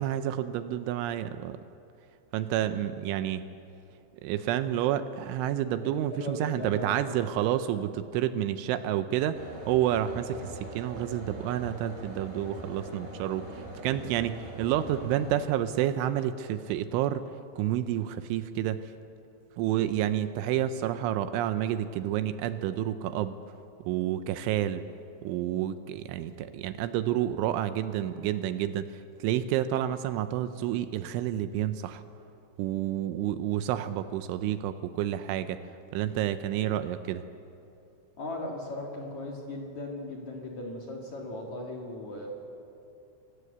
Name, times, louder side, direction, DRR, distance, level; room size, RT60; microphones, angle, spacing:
voice 1, 0.0-1.6 2.3-3.5 4.2-17.2 17.6-18.8 19.6-23.4 23.9-24.8 25.2-32.0 32.6-35.6 35.9-37.2, right 11 dB, 80° right, 11 dB, 2.9 m, -29 dB
voice 2, 5.8-7.3 38.2-42.3, left 1 dB, 50° left, -1 dB, 2.4 m, -38 dB
sound 1, 9.3-15.4, right 2 dB, 40° right, 6.1 m, -42 dB
25.5 x 15.0 x 8.0 m, 2.7 s
omnidirectional pair, 5.9 m